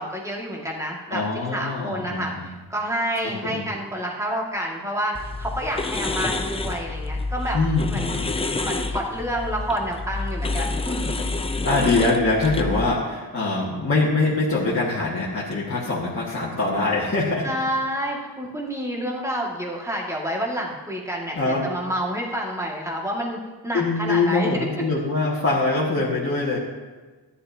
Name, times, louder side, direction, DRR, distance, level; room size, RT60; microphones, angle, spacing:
voice 1, 0.0-1.2 1.5-7.6 7.9-8.2 8.6-11.1 17.4-23.4 23.6-24.8, equal, 5° right, -3 dB, 1.9 m, -29 dB
voice 2, 1.1-2.5 3.2-3.7 7.5-8.3 11.6-17.5 21.4-21.6 23.7-26.6, left 3 dB, 35° left, -7 dB, 1.8 m, -23 dB
sound 1, 5.1-12.9, left 3 dB, 15° left, 0.5 m, -28 dB
13.5 x 11.0 x 2.8 m, 1.3 s
wide cardioid pair, 115°, 41 cm